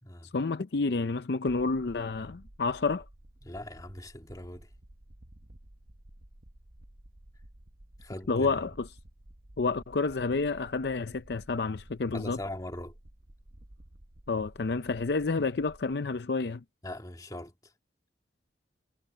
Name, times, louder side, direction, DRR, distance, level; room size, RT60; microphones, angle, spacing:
voice 1, 0.3-3.0 8.3-8.7 9.6-12.4 14.3-16.6, left 4 dB, 65° left, 0.6 m, -29 dB
sound 1, 1.5-16.0, right 1 dB, 55° right, 1.3 m, -54 dB
voice 2, 3.4-4.7 8.0-8.6 12.1-13.0 16.8-17.7, left 1 dB, 20° left, 2.6 m, -40 dB
head